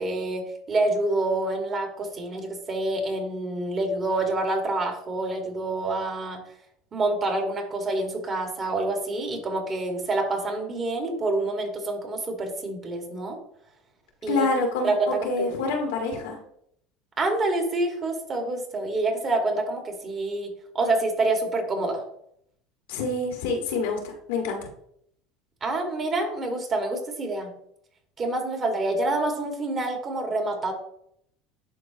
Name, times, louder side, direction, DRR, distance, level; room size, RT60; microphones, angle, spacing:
voice 1, 0.0-6.4 6.9-13.4 14.2-14.5 14.8-15.5 17.2-22.0 25.6-27.5 28.2-30.7, right 2 dB, 35° right, 3 dB, 1.9 m, -27 dB
voice 2, 14.3-16.4 22.9-24.6, left 3 dB, 85° left, 2 dB, 1.8 m, -27 dB
11.0 x 3.9 x 2.9 m, 0.70 s
supercardioid pair, 105°, 0 cm